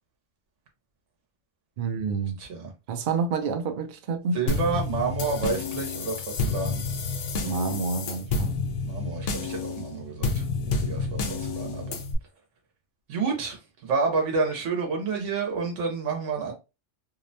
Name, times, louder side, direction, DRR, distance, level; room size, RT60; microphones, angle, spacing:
voice 1, 1.8-2.4 2.9-4.4 7.4-8.5, right 5 dB, 60° right, 0.5 m, -28 dB
voice 2, 2.4-2.7 4.3-6.8 8.8-12.0 13.1-16.5, right 4 dB, 85° right, 1.1 m, -29 dB
sound 1, 4.5-12.2, left 3 dB, 90° left, 0.9 m, -29 dB
2.8 x 2.1 x 2.5 m
omnidirectional pair, 1.2 m